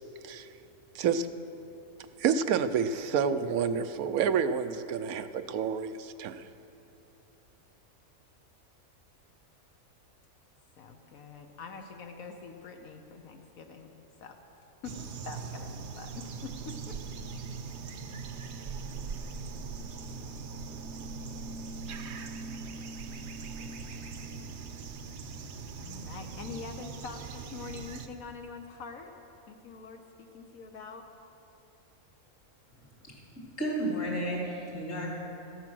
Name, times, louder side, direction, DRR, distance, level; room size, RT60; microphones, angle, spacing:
voice 1, 0.9-1.3 2.2-6.4, right 7 dB, 85° right, 10 dB, 1.1 m, -29 dB
voice 2, 10.8-13.9 14.2-14.4 14.8-17.0 25.8-29.1 29.5-31.0 34.9-35.1, left 5 dB, 80° left, 4 dB, 1.3 m, -45 dB
sound 1, 14.8-28.1, right 4 dB, 60° right, 0.9 m, -40 dB
voice 3, 33.6-35.1, right 1 dB, 60° left, -3 dB, 3.3 m, -32 dB
14.0 x 9.9 x 6.1 m, 2.8 s
omnidirectional pair, 1.5 m